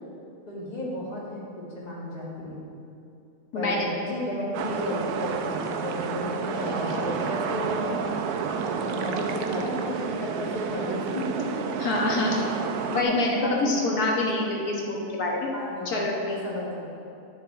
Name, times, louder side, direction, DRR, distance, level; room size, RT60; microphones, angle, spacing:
voice 1, 0.5-2.7 3.5-8.0 8.5-11.7 13.0-14.5 15.5-17.0, left 1 dB, 25° left, -6 dB, 2.0 m, -33 dB
voice 2, 3.5-3.9 11.8-12.4 12.9-15.4 15.9-16.4, left 2 dB, 75° left, -2 dB, 1.8 m, -26 dB
sound 1, 4.5-13.0, right 6 dB, 85° right, 1.1 m, -30 dB
11.0 x 7.2 x 3.4 m, 2.6 s
omnidirectional pair, 1.6 m